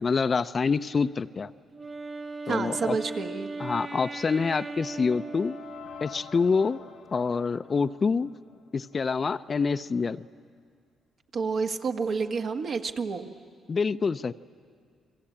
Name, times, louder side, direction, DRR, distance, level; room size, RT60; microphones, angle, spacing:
voice 1, 0.0-1.5 2.5-3.0 3.6-5.6 6.0-6.8 7.1-8.3 8.7-10.2 13.7-14.3, left 5 dB, 40° left, 12 dB, 0.6 m, -26 dB
Wind instrument woodwind instrument, 1.7-6.5, right 3 dB, 35° right, 2.0 m, -38 dB
voice 2, 2.5-3.5 11.3-13.3, right 5 dB, 60° right, 4 dB, 1.6 m, -29 dB
sound 1, 3.9-9.1, left 8 dB, 80° left, 1.1 m, -48 dB
30.0 x 22.5 x 8.7 m, 2.1 s
cardioid pair, 75°, 0 cm